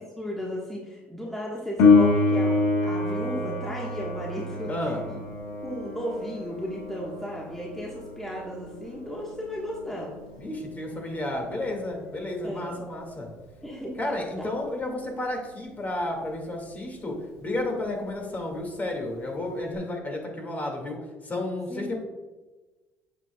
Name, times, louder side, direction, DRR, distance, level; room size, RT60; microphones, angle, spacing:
voice 1, 0.0-4.7 5.1-5.2 5.6-10.1 12.4-12.8 13.6-14.0 14.4-14.5 21.7-21.8, equal, 5° left, -4 dB, 1.5 m, -35 dB
Piano, 1.8-12.2 19.7-19.8, left 3 dB, 80° left, 1.4 m, -27 dB
voice 2, 4.7-5.0 10.4-13.3 14.0-17.2 17.4-22.0, left 1 dB, 30° left, 1 dB, 2.2 m, -32 dB
8.0 x 6.9 x 2.4 m, 1.2 s
supercardioid pair, 80°, 6 cm